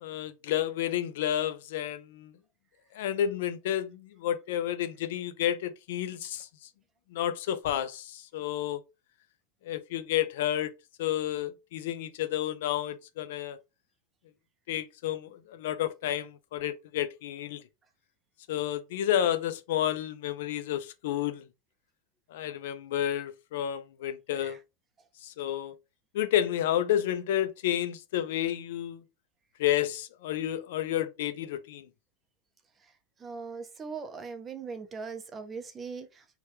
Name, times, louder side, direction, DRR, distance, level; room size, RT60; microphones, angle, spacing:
voice 1, 0.0-2.3 2.9-6.5 7.1-8.8 9.7-10.7 11.0-13.6 14.7-17.6 18.5-21.4 22.3-24.6 25.2-25.7 26.1-29.0 29.6-31.8, left 11 dB, 70° left, 0.4 m, -30 dB
voice 2, 32.8-36.3, right 5 dB, 15° right, 0.4 m, -40 dB
2.9 x 2.2 x 3.3 m
supercardioid pair, 160°, 0 cm